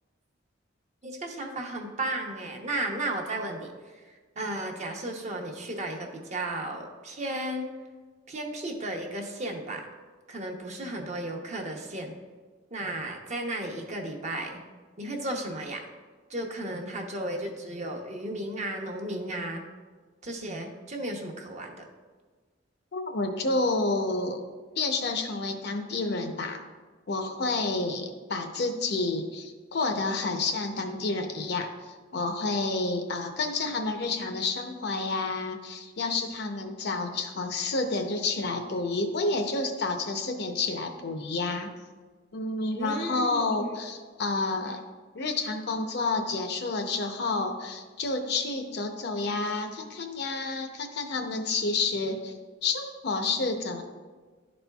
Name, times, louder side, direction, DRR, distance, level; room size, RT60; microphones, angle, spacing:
voice 1, 1.0-7.7 8.3-9.9 10.3-12.1 12.7-14.6 15.0-15.9 16.3-19.6 20.2-21.9 42.8-43.8, right 1 dB, 40° right, 2 dB, 0.8 m, -34 dB
voice 2, 22.9-24.4 24.8-26.6 27.1-31.7 32.1-41.7 42.3-44.8 45.1-53.8, left 3 dB, 60° left, 6 dB, 0.6 m, -29 dB
11.0 x 4.2 x 2.3 m, 1.4 s
head